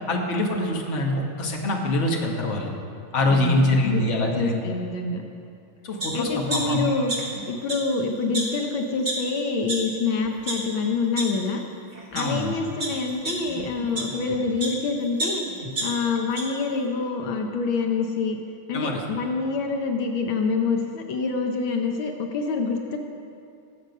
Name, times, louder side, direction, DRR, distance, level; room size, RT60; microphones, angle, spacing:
voice 1, 0.1-2.7 3.1-4.6 5.8-6.8 12.1-12.6 18.7-19.0, left 1 dB, 40° left, 0 dB, 1.6 m, -24 dB
voice 2, 3.2-5.2 6.1-7.1 7.5-11.6 12.1-15.4 15.8-18.4 18.7-23.0, left 4 dB, 75° left, 3 dB, 1.7 m, -26 dB
sound 1, 6.0-6.1 6.5-7.4 7.7-7.8 8.3-8.4 9.0-9.1 9.7-9.8 10.3-10.5 11.2-11.3 11.9-12.2 12.8-14.8 15.2-16.4 16.8-16.9, right 2 dB, 25° right, 2.4 m, -29 dB
19.0 x 7.8 x 5.3 m, 2.6 s
omnidirectional pair, 2.2 m